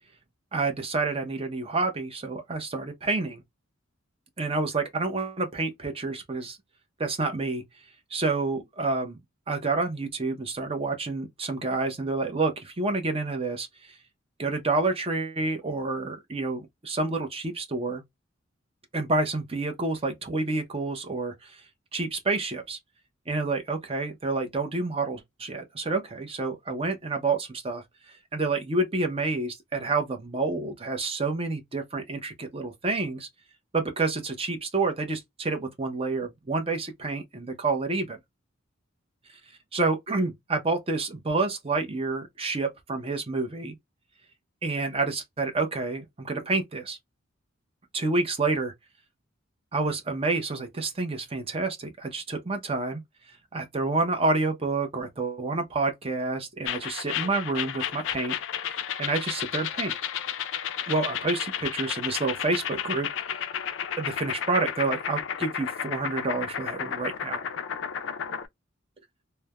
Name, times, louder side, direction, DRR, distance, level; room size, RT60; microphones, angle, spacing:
voice 1, 0.5-3.4 4.4-6.6 7.0-7.6 8.1-9.2 9.5-13.7 14.4-18.0 18.9-21.5 21.9-22.8 23.3-27.8 28.3-33.3 33.7-38.2 39.7-43.7 44.6-47.0 47.9-48.7 49.7-53.0 53.5-58.3 58.7-59.9 60.9-63.1 64.0-67.4, right 3 dB, 30° right, 0.6 m, -28 dB
sound 1, 56.7-68.5, left 9 dB, 65° left, 0.4 m, -32 dB
3.2 x 2.0 x 2.2 m
head